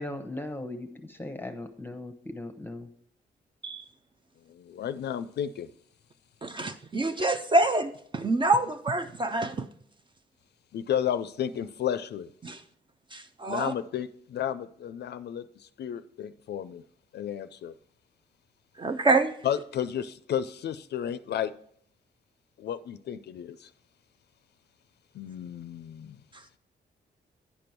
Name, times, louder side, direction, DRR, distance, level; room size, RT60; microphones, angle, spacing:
voice 1, 0.0-2.9, left 1 dB, 10° left, 0.8 m, -38 dB
voice 2, 4.5-5.7 10.7-12.3 13.5-16.8 17.1-17.7 19.4-21.5 22.6-23.7 25.1-26.2, left 9 dB, 70° left, 0.4 m, -32 dB
voice 3, 6.4-9.7 12.4-12.6 13.1-13.7 18.8-19.3, right 2 dB, 25° right, 0.5 m, -26 dB
10.0 x 5.2 x 4.5 m
cardioid pair, 85°, 18 cm